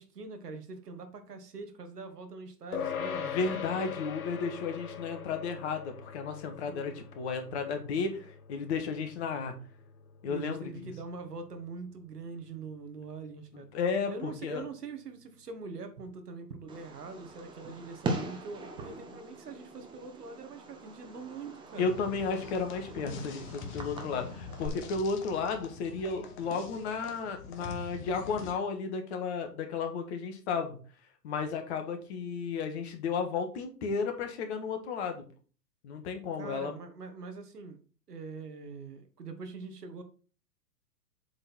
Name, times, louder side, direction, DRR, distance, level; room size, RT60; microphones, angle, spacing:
voice 1, 0.0-3.3 6.7-7.0 10.3-13.7 14.1-21.9 36.4-37.8 38.1-40.0, right 4 dB, 75° right, 1.6 m, -43 dB
sound 1, 2.7-12.4, left 7 dB, 60° left, 1.0 m, -42 dB
voice 2, 3.2-9.6 10.2-10.9 13.5-14.6 21.8-30.8 31.2-35.3 35.8-36.7, left 5 dB, 40° left, 1.6 m, -33 dB
Fireworks, 16.7-24.7, right 2 dB, 10° right, 1.0 m, -41 dB
sound 2, 21.8-28.5, left 5 dB, 25° left, 1.1 m, -44 dB
7.7 x 4.0 x 4.3 m
figure-of-eight pair, 115°, 48 cm